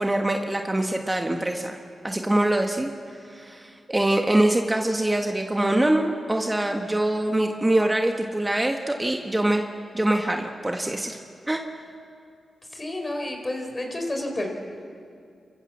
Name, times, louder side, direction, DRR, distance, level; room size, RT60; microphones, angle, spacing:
voice 1, 0.0-1.8 2.0-2.9 3.3-9.6 9.9-11.2 11.5-11.6, right 1 dB, 20° right, 3 dB, 1.5 m, -24 dB
voice 2, 12.7-14.5, left 1 dB, 30° left, 3 dB, 4.5 m, -30 dB
28.0 x 14.5 x 7.3 m, 2.4 s
cardioid pair, 50°, 0 cm